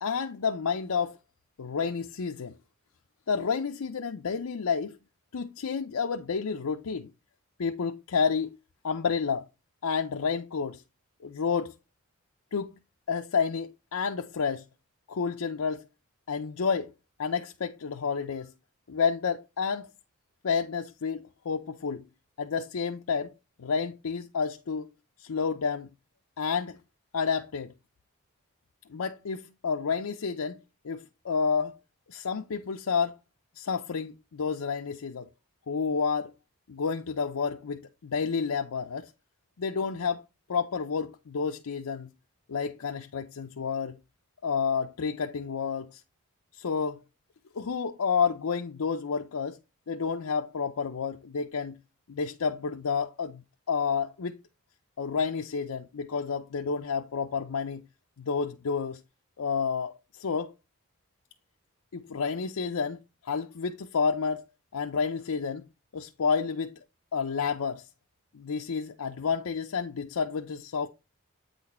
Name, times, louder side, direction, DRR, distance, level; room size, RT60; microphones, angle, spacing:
voice 1, 0.0-1.2 1.6-2.5 3.3-5.0 5.3-7.1 7.6-8.5 8.8-9.5 9.8-10.8 11.2-11.8 12.5-12.7 13.1-14.6 15.1-15.8 16.3-16.9 17.2-18.5 18.9-19.9 20.4-22.1 22.4-23.3 23.6-24.9 25.2-25.9 26.4-26.8 27.1-27.7 28.9-30.6 30.8-31.7 32.1-33.2 33.6-35.3 35.7-36.3 36.7-39.1 39.6-40.2 40.5-42.1 42.5-44.0 44.4-46.0 46.5-47.0 47.5-49.6 49.9-51.8 52.1-53.4 53.7-54.4 55.0-57.8 58.2-59.0 59.4-60.5 61.9-63.0 63.2-64.4 64.7-65.6 65.9-66.7 67.1-67.9 68.3-70.9, left 5 dB, 90° left, 0.6 m, -30 dB
8.6 x 4.1 x 4.2 m
head